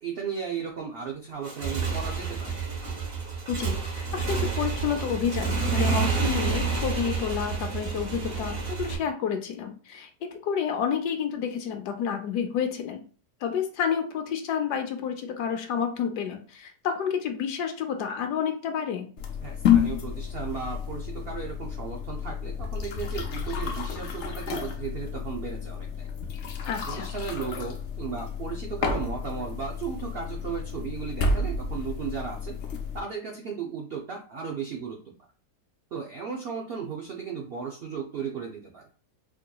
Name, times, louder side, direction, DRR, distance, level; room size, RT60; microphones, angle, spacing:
voice 1, 0.0-2.6 19.4-26.1 26.6-32.6 32.9-35.0 35.9-38.9, right 6 dB, 85° right, 1 dB, 0.5 m, -35 dB
Motorcycle / Engine, 1.3-9.0, right 5 dB, 40° right, 1.1 m, -29 dB
voice 2, 3.5-13.0 13.4-19.1 26.7-27.0, left 7 dB, 85° left, 6 dB, 1.2 m, -30 dB
sound 1, 19.2-33.0, left 6 dB, 60° left, 0.8 m, -30 dB
4.6 x 2.8 x 2.2 m, 0.39 s
omnidirectional pair, 1.7 m